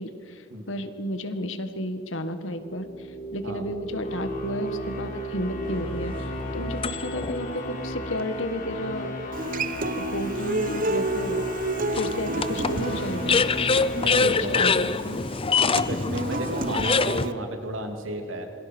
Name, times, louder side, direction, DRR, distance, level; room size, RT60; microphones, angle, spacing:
voice 1, 0.0-9.1 9.9-13.5 14.2-15.2, left 1 dB, 70° left, 9 dB, 1.9 m, -32 dB
sound 1, 2.5-15.6, equal, 45° left, 4.0 m, -35 dB
sound 2, 5.7-7.4 8.0-8.1 11.9-17.3, left 5 dB, 25° left, 0.6 m, -25 dB
Human voice / Acoustic guitar, 9.3-17.3, right 2 dB, 45° right, 0.9 m, -30 dB
voice 2, 13.9-14.6 15.9-18.5, right 1 dB, 75° right, 4 dB, 3.1 m, -32 dB
27.0 x 23.5 x 6.4 m, 2.6 s
head